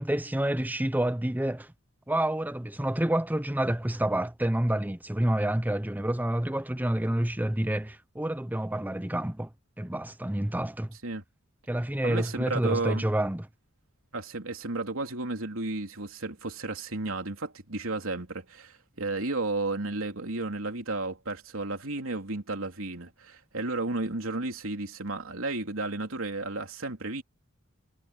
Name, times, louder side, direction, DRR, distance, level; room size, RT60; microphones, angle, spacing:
voice 1, 0.0-1.7 2.1-9.5 9.8-11.0 11.7-13.5, right 1 dB, 10° right, 0.8 m, -28 dB
voice 2, 12.0-13.1 14.1-27.2, right 2 dB, 90° right, 3.1 m, -33 dB
head